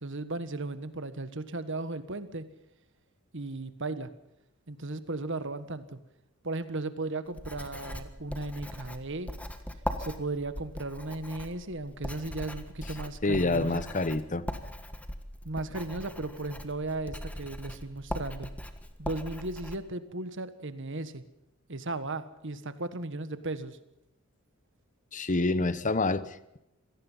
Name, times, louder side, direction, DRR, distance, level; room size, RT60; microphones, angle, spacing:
voice 1, 0.0-2.4 3.3-4.1 4.7-6.0 6.4-9.3 10.0-13.8 15.4-18.5 19.0-21.2 21.7-23.8, right 2 dB, 60° right, 1.6 m, -36 dB
Writing, 7.3-19.8, left 1 dB, 5° left, 1.5 m, -40 dB
voice 2, 13.2-14.5 25.1-26.6, left 2 dB, 35° left, 1.0 m, -27 dB
25.5 x 18.0 x 5.7 m
head